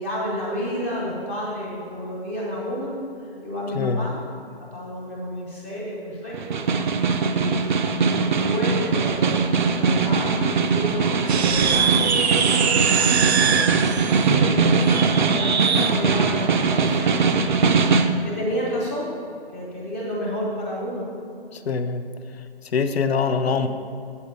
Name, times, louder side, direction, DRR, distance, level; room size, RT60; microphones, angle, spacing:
voice 1, 0.0-4.3 4.7-6.6 7.3-7.8 8.1-17.6 18.2-19.1 19.5-21.1, equal, 15° left, -5 dB, 0.6 m, -30 dB
voice 2, 3.8-4.1 21.7-22.0 22.7-23.7, left 5 dB, 75° left, 9 dB, 0.7 m, -23 dB
Snare drum, 6.3-18.2, right 5 dB, 50° right, 0.5 m, -21 dB
sound 1, 11.2-16.0, right 6 dB, 90° right, 0.6 m, -23 dB
8.4 x 4.2 x 6.4 m, 2.4 s
hypercardioid pair, 160°, 31 cm